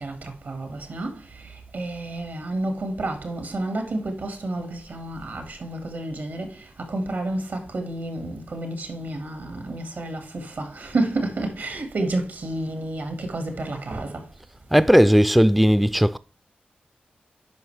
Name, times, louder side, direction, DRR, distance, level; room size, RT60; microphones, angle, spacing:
voice 1, 0.0-14.3, right 2 dB, 75° right, 1.9 m, -30 dB
voice 2, 14.7-16.2, equal, ahead, 0.3 m, -16 dB
9.2 x 5.6 x 3.3 m
cardioid pair, 65°, 3 cm